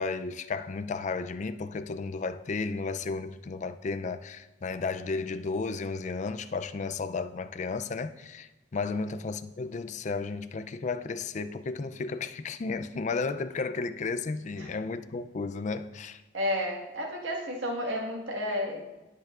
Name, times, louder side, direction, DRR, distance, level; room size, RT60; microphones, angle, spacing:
voice 1, 0.0-16.2, left 4 dB, 40° left, 0.4 m, -33 dB
voice 2, 16.3-18.8, left 1 dB, 85° right, 1.6 m, -32 dB
18.0 x 6.6 x 2.4 m
head